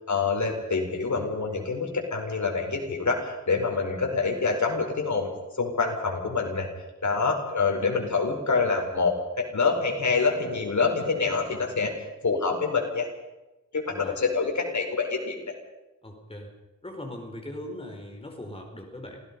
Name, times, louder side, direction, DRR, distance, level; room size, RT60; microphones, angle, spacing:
voice 1, 0.1-5.3 5.6-6.7 7.0-11.9 12.2-13.1 13.7-15.5, left 4 dB, 70° left, 2 dB, 5.0 m, -26 dB
voice 2, 16.0-16.5 16.8-19.2, left 1 dB, 20° left, 2 dB, 4.5 m, -39 dB
27.0 x 17.5 x 5.5 m, 1.0 s
wide cardioid pair, 95°, 30 cm